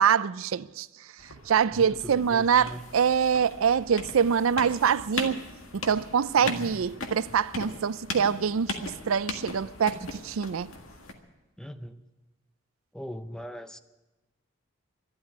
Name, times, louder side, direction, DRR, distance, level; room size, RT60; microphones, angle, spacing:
voice 1, 0.0-5.5 5.7-10.7, right 7 dB, 80° right, 0.4 m, -25 dB
sound 1, 1.2-11.1, left 3 dB, 80° left, 1.7 m, -39 dB
voice 2, 1.7-2.8 6.4-6.9 11.6-12.0 12.9-13.8, equal, 5° left, 0.6 m, -40 dB
12.5 x 12.0 x 9.7 m
head